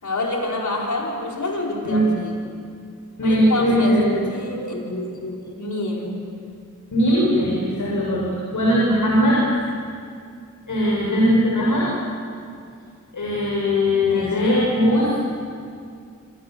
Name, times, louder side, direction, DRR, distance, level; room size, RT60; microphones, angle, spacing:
voice 1, 0.0-2.3 3.2-6.2 14.1-14.4, left 2 dB, 70° left, -1 dB, 5.0 m, -27 dB
voice 2, 3.2-4.2 6.9-9.4 10.7-11.9 13.1-15.1, equal, 90° left, -5 dB, 6.7 m, -19 dB
28.0 x 26.0 x 7.8 m, 2.4 s
wide cardioid pair, 80°, 31 cm